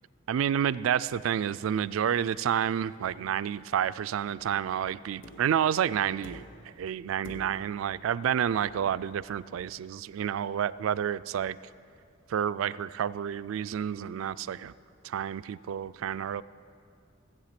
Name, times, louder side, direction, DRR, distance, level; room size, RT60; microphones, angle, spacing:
voice 1, 0.3-11.6 12.3-14.7 15.0-16.4, right 9 dB, 80° right, 17 dB, 0.3 m, -29 dB
sound 1, 4.3-4.6 5.2-5.6 6.2-6.8 7.2-7.8 9.1-9.2, left 1 dB, 65° left, 1.2 m, -47 dB
16.0 x 8.3 x 5.9 m, 2.4 s
head